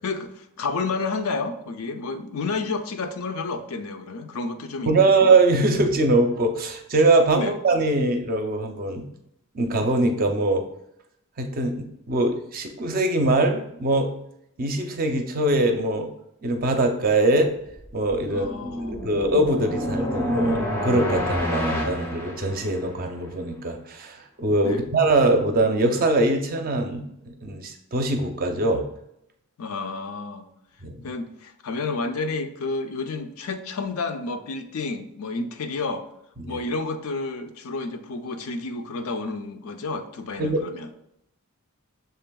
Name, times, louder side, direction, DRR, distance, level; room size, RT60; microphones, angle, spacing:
voice 1, 0.0-5.2 7.3-7.5 18.3-19.0 24.6-24.8 29.6-30.5 31.0-36.1 36.5-40.9, left 3 dB, 70° left, 8 dB, 0.5 m, -30 dB
voice 2, 4.9-9.1 9.5-10.7 11.4-14.1 14.6-16.1 16.4-17.5 17.9-18.5 18.8-28.8 30.8-31.0 36.4-36.6 40.4-40.6, right 2 dB, 40° right, 5 dB, 0.5 m, -22 dB
sound 1, 17.9-23.1, equal, 10° left, 0.5 m, -28 dB
6.7 x 3.4 x 2.2 m, 0.78 s
head